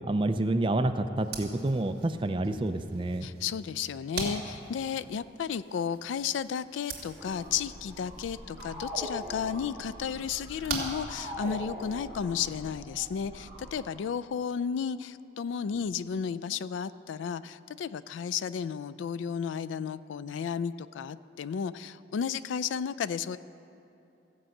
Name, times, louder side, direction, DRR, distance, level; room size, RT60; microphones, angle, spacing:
voice 1, 0.1-3.3, right 2 dB, 25° right, 8 dB, 0.4 m, -28 dB
sound 1, 1.1-11.8, right 4 dB, 55° right, 1.8 m, -43 dB
voice 2, 3.2-23.4, left 7 dB, 85° left, 15 dB, 0.3 m, -33 dB
slow cardinal, 7.2-13.9, equal, 5° right, 2.6 m, -42 dB
15.0 x 5.4 x 7.7 m, 2.8 s
head